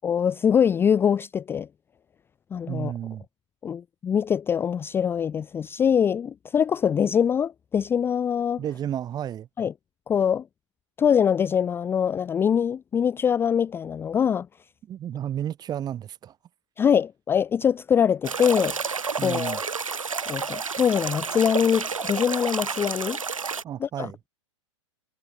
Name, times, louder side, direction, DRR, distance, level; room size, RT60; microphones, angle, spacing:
voice 1, 0.0-1.7 2.5-2.9 3.6-8.6 9.6-9.7 10.1-10.4 11.0-14.5 16.8-18.8 19.2-19.7 20.3-23.2 23.8-24.1, left 8 dB, 15° left, 0.5 m, -23 dB
voice 2, 2.7-3.2 8.6-9.5 14.9-16.4 19.2-19.6 23.6-24.2, right 10 dB, 25° right, 2.1 m, -32 dB
sound 1, 18.2-23.6, right 5 dB, 90° right, 0.5 m, -30 dB
figure-of-eight pair, 105°, 17 cm